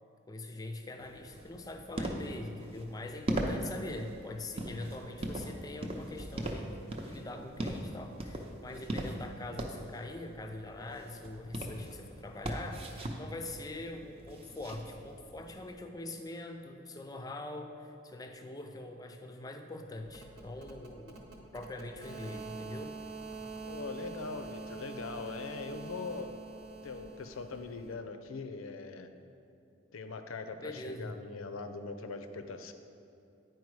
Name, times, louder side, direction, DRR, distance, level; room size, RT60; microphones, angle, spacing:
voice 1, 0.3-6.7 7.1-21.3 21.5-23.0 30.6-31.2, left 2 dB, 20° left, 5 dB, 0.4 m, -43 dB
sound 1, 1.0-15.8, right 1 dB, 30° right, 0.6 m, -40 dB
sound 2, 20.0-27.9, right 4 dB, 55° right, 1.0 m, -45 dB
voice 2, 23.6-26.4 26.8-29.1 29.9-32.7, left 4 dB, 90° left, 8 dB, 0.5 m, -41 dB
9.5 x 4.6 x 4.7 m, 2.8 s
head